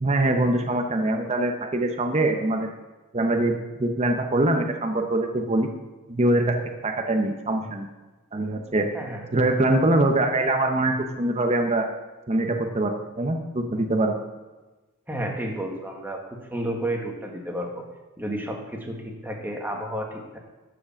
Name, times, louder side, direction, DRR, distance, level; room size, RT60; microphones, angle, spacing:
voice 1, 0.0-2.7 3.1-5.7 6.1-6.6 6.8-7.9 8.3-8.9 9.3-11.9 12.3-14.2, right 2 dB, 30° right, 4 dB, 0.8 m, -23 dB
voice 2, 15.1-16.2 16.5-17.8 18.2-20.4, right 1 dB, 10° right, 1 dB, 1.5 m, -31 dB
12.0 x 5.0 x 7.1 m, 1.2 s
head